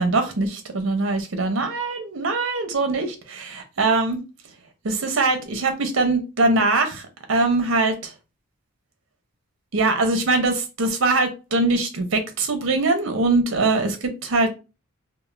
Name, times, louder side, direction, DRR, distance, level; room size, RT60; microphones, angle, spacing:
voice 1, 0.0-4.2 4.8-8.1 9.7-14.5, right 3 dB, 65° right, 0.6 m, -22 dB
2.3 x 2.1 x 3.1 m
head